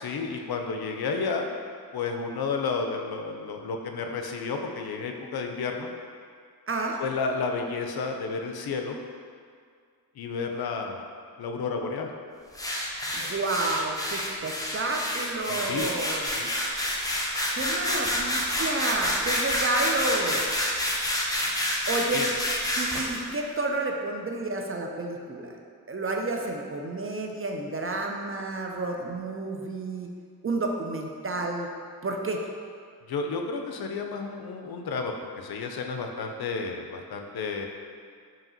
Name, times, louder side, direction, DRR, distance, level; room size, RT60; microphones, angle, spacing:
voice 1, 0.0-1.5 1.9-5.9 7.0-9.0 10.2-11.0 11.4-12.1 15.5-15.9 16.3-16.5 22.1-22.3 33.1-37.7, left 4 dB, 65° left, 3 dB, 0.5 m, -31 dB
voice 2, 6.7-7.0 13.1-16.3 17.5-20.4 21.9-22.3 22.8-25.6 25.9-30.1 30.4-31.7 32.0-32.4, right 2 dB, 35° right, 2 dB, 0.4 m, -30 dB
sound 1, 12.6-23.2, left 1 dB, 10° left, 0.6 m, -28 dB
4.7 x 2.9 x 2.7 m, 2.1 s
cardioid pair, 45°, 40 cm